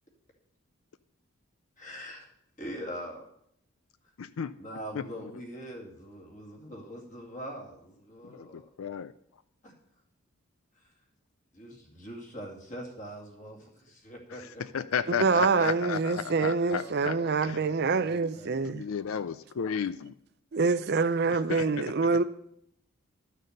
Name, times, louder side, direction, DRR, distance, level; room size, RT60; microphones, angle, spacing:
voice 1, 1.8-2.3 2.6-3.2 4.6-8.7 9.6-9.7 10.7-10.9 11.5-14.8 16.8-17.5 17.8-18.6, equal, 35° left, 2.4 m, -43 dB
voice 2, 4.2-4.5 4.9-5.0 8.2-9.1 14.7-17.2 17.4-17.6 18.6-20.1 21.5-21.9, left 7 dB, 80° left, 0.4 m, -33 dB
voice 3, 15.2-18.8 20.5-22.2, right 4 dB, 50° right, 0.5 m, -26 dB
12.5 x 6.6 x 6.6 m
head